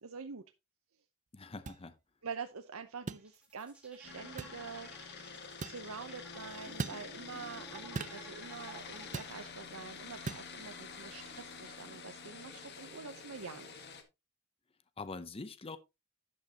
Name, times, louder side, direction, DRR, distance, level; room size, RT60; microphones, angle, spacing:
voice 1, 0.0-0.4 2.2-4.9 5.6-13.9, right 5 dB, 85° right, 0.8 m, -46 dB
voice 2, 1.3-1.9 15.0-15.8, left 3 dB, 25° left, 0.6 m, -44 dB
sound 1, 1.7-1.8 3.1-3.3 4.4-4.6 5.6-5.8 6.8-7.0 7.9-8.2 9.1-9.4 10.3-10.5, right 4 dB, 35° right, 0.5 m, -39 dB
sound 2, 3.2-9.5, right 1 dB, 5° right, 2.9 m, -55 dB
sound 3, 4.0-14.0, left 5 dB, 50° left, 1.7 m, -48 dB
12.0 x 8.3 x 2.9 m
head